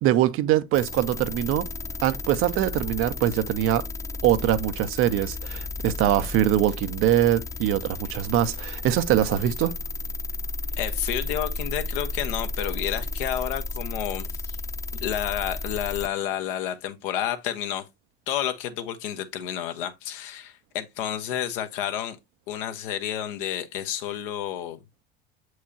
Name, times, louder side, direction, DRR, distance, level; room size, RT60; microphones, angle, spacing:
voice 1, 0.0-1.7 2.0-3.8 4.2-9.8, right 12 dB, 45° right, 0.7 m, -23 dB
sound 1, 0.7-16.1, left 3 dB, 10° left, 0.3 m, -33 dB
voice 2, 10.8-14.6 14.9-17.9 18.3-22.2 22.5-24.8, left 11 dB, 65° left, 1.1 m, -30 dB
7.2 x 4.7 x 2.8 m
hypercardioid pair, 80°, 29 cm